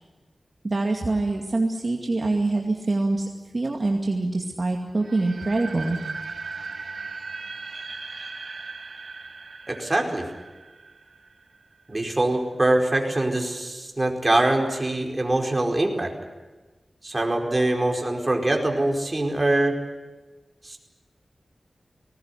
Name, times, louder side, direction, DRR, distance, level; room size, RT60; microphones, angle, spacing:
voice 1, 0.6-3.3 3.5-6.0, right 2 dB, 50° right, 1 dB, 2.3 m, -25 dB
sound 1, 5.0-11.9, right 4 dB, 80° right, 2.2 m, -38 dB
voice 2, 9.7-10.2 11.9-16.1 17.0-19.8 20.6-20.8, right 2 dB, 30° right, 2 dB, 4.7 m, -23 dB
20.0 x 19.0 x 9.9 m, 1.2 s
wide cardioid pair, 60°, 0 cm